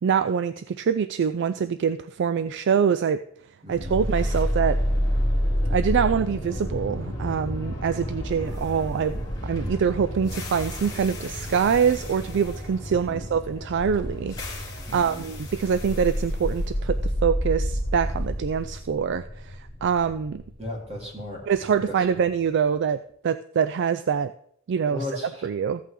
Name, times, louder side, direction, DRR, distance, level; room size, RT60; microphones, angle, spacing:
voice 1, 0.0-3.2 3.7-4.8 5.7-20.4 21.5-24.3 24.7-25.1 25.4-25.8, right 7 dB, 55° right, 12 dB, 0.3 m, -25 dB
voice 2, 3.6-4.0 12.9-13.3 14.9-15.2 20.6-21.4 21.9-22.2 24.8-25.5, left 1 dB, 30° right, -3 dB, 3.8 m, -36 dB
sound 1, 3.7-21.8, equal, 20° left, 2.7 m, -29 dB
14.5 x 8.3 x 3.8 m, 0.68 s
head